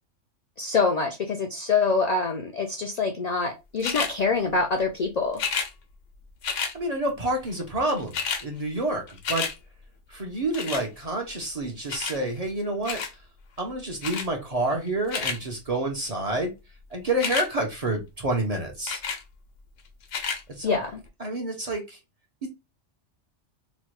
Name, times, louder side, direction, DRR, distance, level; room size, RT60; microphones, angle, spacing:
voice 1, 0.6-5.4 20.6-21.0, left 4 dB, 70° left, 0.4 m, -25 dB
sound 1, 3.8-4.1 5.3-5.7 6.4-6.7 7.7-7.8 8.0-8.4 8.8-9.5 10.5-10.9 11.9-12.2 12.8-13.1 14.0-14.3 14.9-15.4 17.1-17.5 18.9-19.2 20.0-20.4 21.1-21.2, left 6 dB, 85° left, 1.0 m, -30 dB
voice 2, 6.7-8.1 8.4-9.5 10.1-13.0 13.6-16.5 16.9-19.0 20.6-20.8 21.2-22.0, right 1 dB, 40° right, 0.6 m, -28 dB
3.0 x 2.2 x 3.0 m
omnidirectional pair, 1.2 m